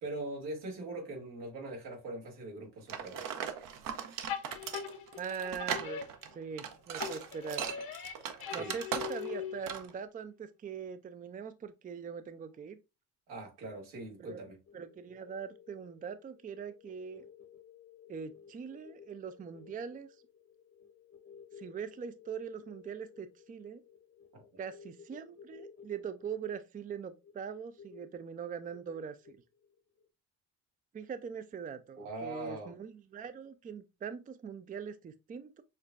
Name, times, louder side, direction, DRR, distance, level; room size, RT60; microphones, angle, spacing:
voice 1, 0.0-3.4 8.5-8.8 13.3-14.6 24.3-24.4 32.0-32.7, right 2 dB, 85° right, 1.8 m, -41 dB
sound 1, 2.9-9.4 9.7-9.9, right 8 dB, 65° right, 0.8 m, -38 dB
sound 2, 4.3-6.6 7.0-9.8, left 8 dB, 70° left, 0.9 m, -41 dB
voice 2, 5.2-6.0 6.3-7.7 8.5-12.8 14.2-14.4 14.7-17.3 18.1-20.1 21.6-23.8 24.6-29.4 30.9-35.6, right 6 dB, 25° right, 0.4 m, -42 dB
sound 3, 14.7-30.1, left 7 dB, 40° left, 0.9 m, -56 dB
6.4 x 2.3 x 2.5 m
supercardioid pair, 70°, 36 cm